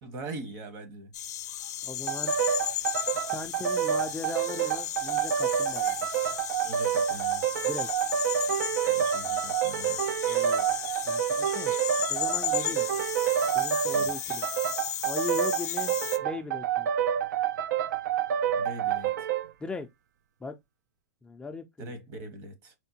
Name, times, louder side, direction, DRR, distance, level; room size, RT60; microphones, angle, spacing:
voice 1, 0.0-1.1 6.6-7.5 8.9-10.1 13.9-14.1 18.6-19.3 21.8-22.7, right 2 dB, 45° right, 1.0 m, -42 dB
sound 1, 1.1-16.2, left 11 dB, 75° left, 0.5 m, -35 dB
voice 2, 1.8-2.3 3.3-6.1 7.6-7.9 10.3-11.8 12.1-12.9 13.5-14.5 15.0-15.9 16.2-16.9 19.6-19.9 20.4-20.5 21.2-21.9, left 3 dB, 10° left, 0.3 m, -38 dB
sound 2, 2.1-19.5, right 9 dB, 75° right, 0.3 m, -28 dB
4.3 x 2.1 x 2.7 m
hypercardioid pair, 130°, 9 cm